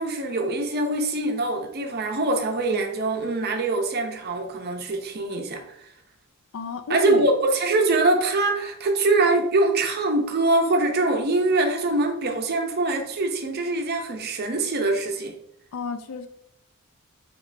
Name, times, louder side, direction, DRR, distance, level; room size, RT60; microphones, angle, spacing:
voice 1, 0.0-5.8 6.9-15.3, right 2 dB, 45° right, 0.6 m, -23 dB
voice 2, 6.5-7.3 15.7-16.3, left 5 dB, 65° left, 0.4 m, -31 dB
5.1 x 3.0 x 2.6 m
head